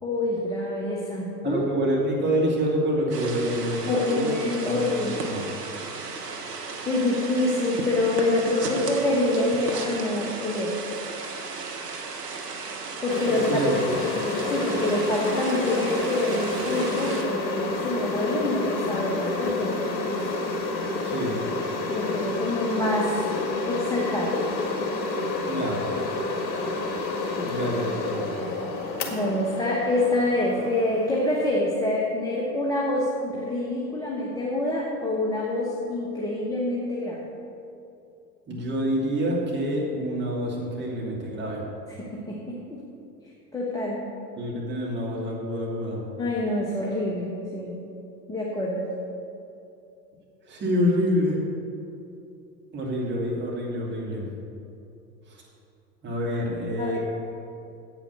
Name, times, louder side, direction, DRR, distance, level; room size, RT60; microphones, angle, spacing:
voice 1, 0.0-1.6 3.9-5.3 6.8-10.8 13.0-13.6 14.5-20.2 21.9-23.1 23.7-24.4 27.4-27.6 29.1-37.2 42.0-42.8 43.5-44.0 46.2-47.8 48.3-48.9 56.8-57.0, left 2 dB, 5° left, -4 dB, 1.1 m, -26 dB
voice 2, 1.4-4.3 4.7-4.9 5.2-5.4 13.3-13.7 21.0-21.3 25.5-25.8 27.4-28.2 38.5-41.7 44.4-46.0 50.4-51.4 52.7-54.3 55.3-55.4 56.0-57.0, equal, 20° right, -4 dB, 2.7 m, -27 dB
sound 1, 3.1-17.2, right 4 dB, 70° right, 1.5 m, -35 dB
sound 2, 13.1-31.6, left 3 dB, 40° left, 1.8 m, -29 dB
9.2 x 8.3 x 6.6 m, 2.7 s
figure-of-eight pair, 90°, 50 cm